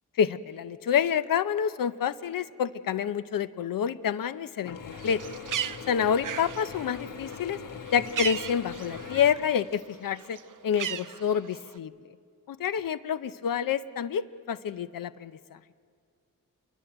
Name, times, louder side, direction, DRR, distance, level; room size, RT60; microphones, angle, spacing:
voice 1, 0.2-5.2 5.9-7.6 7.9-10.4 10.6-11.9 12.5-15.6, left 8 dB, 90° left, 14 dB, 0.7 m, -28 dB
Mechanisms / Drill, 4.6-10.1, left 6 dB, 70° left, 1.4 m, -42 dB
Bird, 4.9-9.5 9.8-11.8, right 9 dB, 70° right, 0.6 m, -37 dB
28.0 x 22.5 x 7.9 m, 2.2 s
wide cardioid pair, 155°, 33 cm